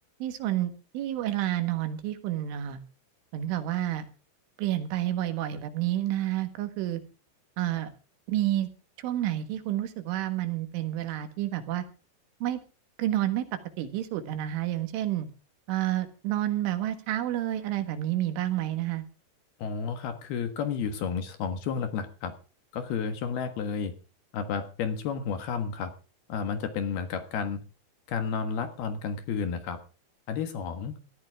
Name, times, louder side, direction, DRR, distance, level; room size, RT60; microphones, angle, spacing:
voice 1, 0.2-2.8 3.3-4.1 4.6-7.0 7.6-7.9 8.3-8.7 9.0-11.8 12.4-12.6 13.0-13.5 13.8-15.3 15.7-19.0, right 13 dB, 80° right, 9 dB, 4.0 m, -29 dB
voice 2, 19.6-22.3 22.7-23.9 24.3-25.9 26.3-27.6 28.1-29.8 30.3-31.0, left 6 dB, 65° left, 9 dB, 3.1 m, -31 dB
19.0 x 13.5 x 3.6 m, 0.34 s
omnidirectional pair, 5.5 m